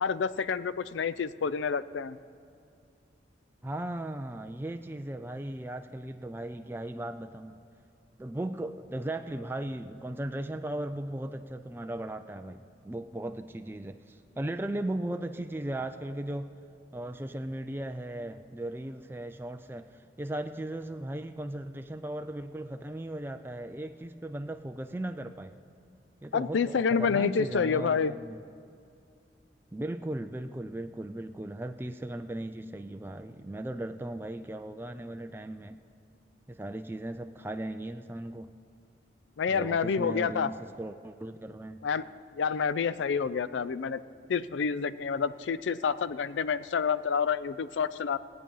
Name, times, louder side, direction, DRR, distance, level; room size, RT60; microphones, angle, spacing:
voice 1, 0.0-2.2 26.3-28.1 39.4-40.5 41.8-42.1 42.4-44.0 44.3-48.2, left 6 dB, 90° left, 15 dB, 0.4 m, -28 dB
voice 2, 3.6-7.6 8.2-16.5 16.9-25.6 26.2-28.4 29.7-35.8 36.5-38.5 39.5-41.9, right 1 dB, 10° right, 6 dB, 0.3 m, -37 dB
17.5 x 8.6 x 5.5 m, 2.4 s
head